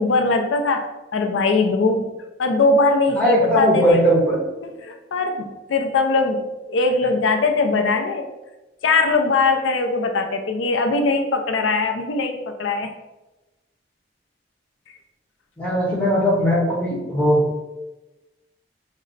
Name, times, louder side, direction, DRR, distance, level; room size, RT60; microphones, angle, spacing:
voice 1, 0.0-2.1 2.4-4.1 4.6-8.3 8.8-12.9, left 3 dB, 90° left, 5 dB, 0.4 m, -21 dB
voice 2, 3.2-4.4 15.6-17.4, equal, 5° left, -5 dB, 1.0 m, -19 dB
5.1 x 2.0 x 3.9 m, 1.0 s
head